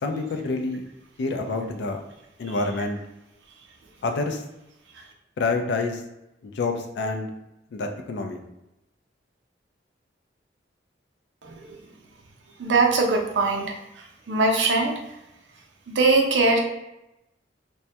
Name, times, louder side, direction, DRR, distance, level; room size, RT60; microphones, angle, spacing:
voice 1, 0.0-0.8 1.2-2.0 2.4-3.0 4.0-4.4 5.4-6.0 6.4-7.3 7.7-8.4, left 3 dB, 70° left, 5 dB, 0.4 m, -27 dB
voice 2, 12.6-13.7 14.3-14.9 15.9-16.6, right 3 dB, 90° right, 1 dB, 0.5 m, -21 dB
2.2 x 2.1 x 2.7 m, 0.91 s
head